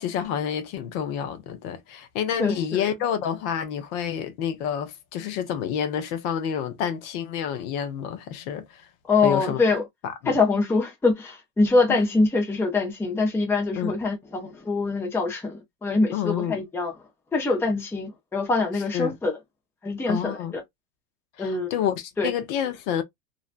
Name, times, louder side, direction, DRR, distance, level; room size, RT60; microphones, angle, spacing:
voice 1, 0.0-8.8 9.2-9.6 10.2-10.4 13.8-13.9 16.1-16.6 18.9-19.2 20.1-20.5 21.4-23.0, left 9 dB, 55° left, 0.7 m, -28 dB
voice 2, 2.4-2.8 9.1-9.8 10.3-16.9 17.3-19.4 19.8-20.6 21.4-21.7 22.2-22.3, left 3 dB, 5° left, 0.5 m, -24 dB
2.6 x 2.1 x 2.4 m
supercardioid pair, 115°, 49 cm